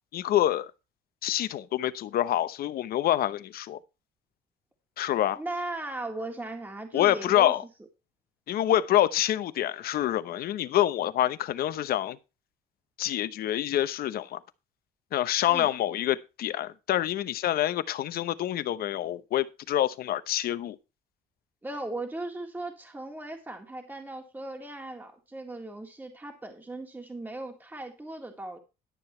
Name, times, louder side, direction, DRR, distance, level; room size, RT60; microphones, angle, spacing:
voice 1, 0.1-0.7 1.2-3.8 5.0-5.4 6.9-7.6 8.5-12.2 13.0-14.4 15.1-20.8, left 12 dB, 65° left, 0.9 m, -26 dB
voice 2, 5.4-7.5 15.5-15.7 21.6-28.6, right 2 dB, 10° right, 1.9 m, -37 dB
11.5 x 6.9 x 4.4 m
cardioid pair, 110°, 17 cm